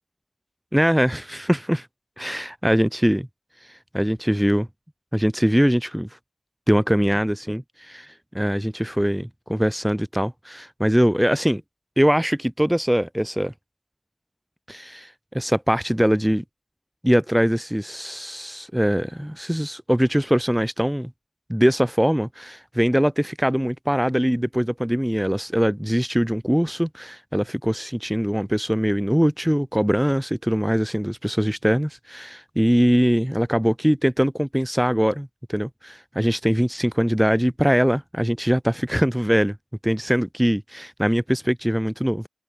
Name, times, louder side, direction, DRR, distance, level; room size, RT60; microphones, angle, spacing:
voice 1, 0.7-1.9 2.2-3.3 3.9-4.7 5.1-6.1 6.7-11.6 12.0-13.5 14.7-16.4 17.0-21.1 21.5-39.6 39.8-42.2, equal, 5° right, 2.0 m, -22 dB
cardioid pair, 45°, 0 cm